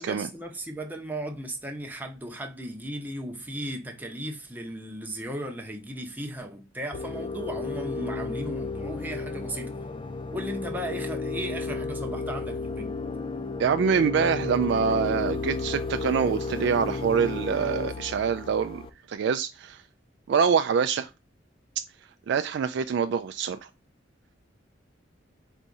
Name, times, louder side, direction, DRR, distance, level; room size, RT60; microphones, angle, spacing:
voice 1, 0.0-9.7 10.3-12.9, right 1 dB, 10° right, 0.8 m, -36 dB
sound 1, 6.9-18.9, left 3 dB, 25° left, 0.4 m, -33 dB
voice 2, 13.6-18.8 19.1-19.8 20.3-21.1 22.3-23.6, right 6 dB, 65° right, 0.3 m, -25 dB
4.1 x 2.6 x 4.7 m
head